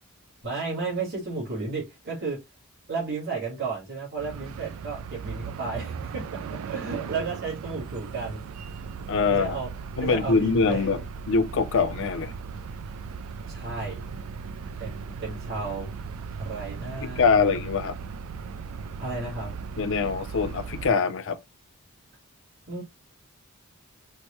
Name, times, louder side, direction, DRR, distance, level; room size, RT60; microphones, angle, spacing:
voice 1, 0.4-2.4 2.9-8.4 9.3-9.7 10.0-11.0 13.5-14.0 14.8-15.9 16.4-17.5 19.0-19.6 22.7-22.8, right 4 dB, 45° right, 1.9 m, -33 dB
sound 1, 4.2-20.9, right 5 dB, 65° right, 0.3 m, -37 dB
voice 2, 9.1-9.6 10.0-11.0 11.3-12.3 17.0-17.9 19.8-21.4, left 4 dB, 60° left, 0.5 m, -23 dB
4.5 x 2.1 x 3.0 m
head